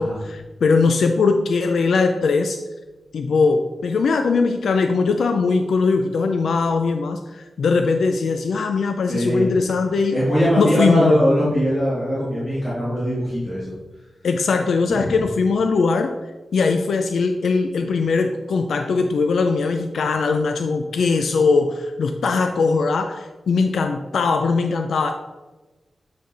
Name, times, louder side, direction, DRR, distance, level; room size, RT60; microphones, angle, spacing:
voice 1, 0.0-2.6 3.1-10.2 10.6-11.2 14.2-16.1 16.5-25.1, left 4 dB, 90° left, 6 dB, 0.4 m, -20 dB
voice 2, 9.1-9.5 10.1-13.7 14.9-15.1, equal, 5° left, -11 dB, 1.8 m, -21 dB
7.9 x 3.3 x 4.0 m, 1.2 s
wide cardioid pair, 170°, 0 cm